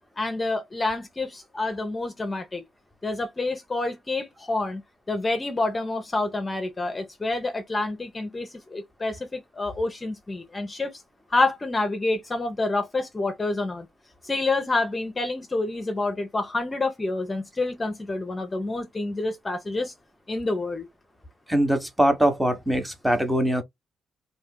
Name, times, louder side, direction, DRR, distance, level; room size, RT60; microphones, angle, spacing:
voice 1, 0.2-2.6 3.0-4.8 5.1-10.9 11.3-13.9 14.2-19.9 20.3-20.9, left 2 dB, 25° left, 0.8 m, -28 dB
voice 2, 21.5-23.6, right 1 dB, 5° right, 1.0 m, -22 dB
3.4 x 2.8 x 2.2 m
cardioid pair, 90°, 0 cm